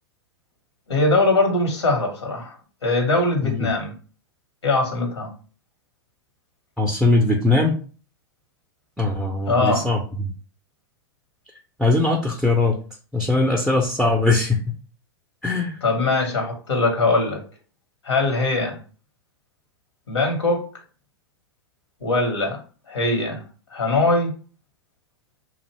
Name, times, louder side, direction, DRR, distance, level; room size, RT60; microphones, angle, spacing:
voice 1, 0.9-2.6 2.8-3.9 4.6-5.3 9.5-9.9 15.8-17.4 18.0-18.8 20.1-20.6 22.0-22.6 22.9-23.4 23.7-24.3, left 2 dB, 85° left, 2 dB, 0.9 m, -21 dB
voice 2, 6.8-7.7 9.0-10.3 11.8-12.8 13.1-14.6 15.4-15.8, left 2 dB, ahead, 1 dB, 0.4 m, -20 dB
2.5 x 2.1 x 2.8 m, 0.39 s
hypercardioid pair, 100°, 14 cm